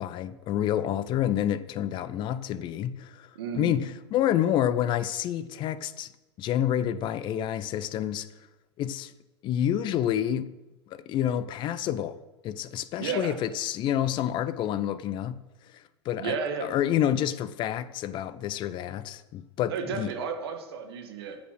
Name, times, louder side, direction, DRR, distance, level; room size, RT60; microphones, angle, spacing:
voice 1, 0.0-6.1 6.4-8.3 8.8-9.1 9.4-10.5 10.9-15.4 15.7-20.1, left 11 dB, 35° left, 0.6 m, -28 dB
voice 2, 3.4-3.9 13.0-13.3 16.2-16.7 19.7-21.4, right 6 dB, 60° right, 2.1 m, -32 dB
13.0 x 8.3 x 6.3 m
figure-of-eight pair, 90°, 15 cm